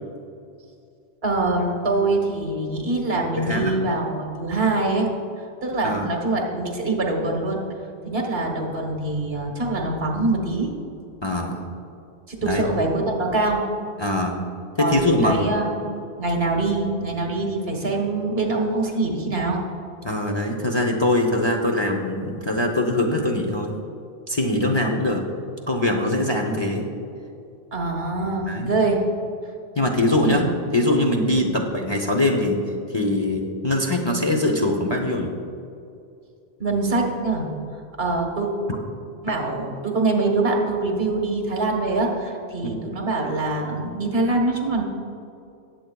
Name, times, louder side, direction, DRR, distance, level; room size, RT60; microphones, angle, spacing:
voice 1, 1.2-5.1 5.6-7.6 8.0-10.7 12.3-13.6 14.8-15.9 16.2-19.6 27.7-29.0 29.8-29.9 30.2-30.5 31.3-31.5 36.6-37.5 38.0-38.5 39.2-44.8, right 2 dB, 70° right, 1 dB, 1.5 m, -24 dB
voice 2, 3.3-3.7 5.8-6.1 11.2-11.6 12.4-12.6 14.0-14.4 14.8-15.4 20.0-23.8 24.3-25.2 25.7-26.9 28.5-28.7 29.8-32.6 32.9-35.3 42.6-42.8, left 1 dB, 30° left, 1 dB, 0.7 m, -22 dB
19.0 x 7.9 x 2.3 m, 2.5 s
omnidirectional pair, 1.1 m